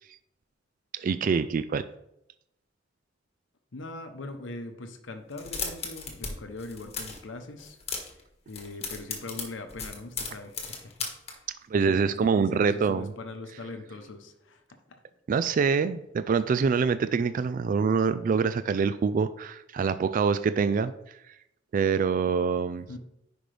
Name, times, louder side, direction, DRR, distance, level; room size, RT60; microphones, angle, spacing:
voice 1, 0.9-1.8 11.7-13.1 15.3-20.9 21.7-22.9, right 5 dB, 45° right, 13 dB, 0.3 m, -25 dB
voice 2, 3.7-7.8 8.5-11.0 11.7-15.0 22.9-23.0, left 2 dB, 90° left, 6 dB, 0.8 m, -41 dB
sound 1, 5.3-6.3 6.6-7.2 7.6-8.2 8.5-11.3, left 5 dB, 35° left, 1.5 m, -35 dB
9.9 x 5.2 x 3.3 m, 0.82 s
head